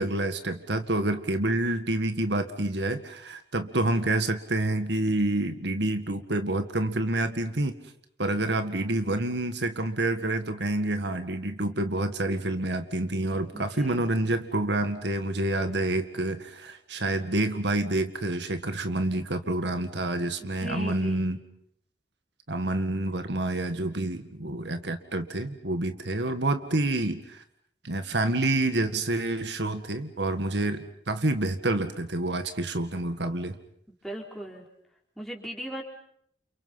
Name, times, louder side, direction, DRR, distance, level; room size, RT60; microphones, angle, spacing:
voice 1, 0.0-7.8 8.2-21.4 22.5-27.4 27.8-33.6, right 2 dB, 70° right, 8 dB, 1.9 m, -28 dB
voice 2, 13.5-14.0 20.4-21.2 34.0-34.6 35.2-35.8, equal, ahead, -1 dB, 4.5 m, -38 dB
29.5 x 29.5 x 5.8 m, 0.69 s
head